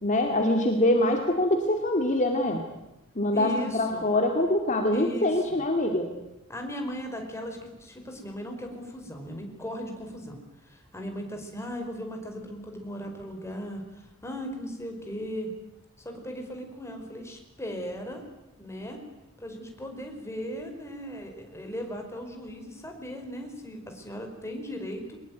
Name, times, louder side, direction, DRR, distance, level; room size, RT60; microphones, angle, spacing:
voice 1, 0.0-2.6 3.2-6.1, left 1 dB, 40° left, 3 dB, 2.6 m, -24 dB
voice 2, 3.3-4.1 4.9-5.6 6.5-15.5 16.0-18.3 18.6-19.0 19.4-25.2, equal, 15° left, 3 dB, 4.8 m, -37 dB
23.0 x 20.5 x 9.4 m, 0.93 s
head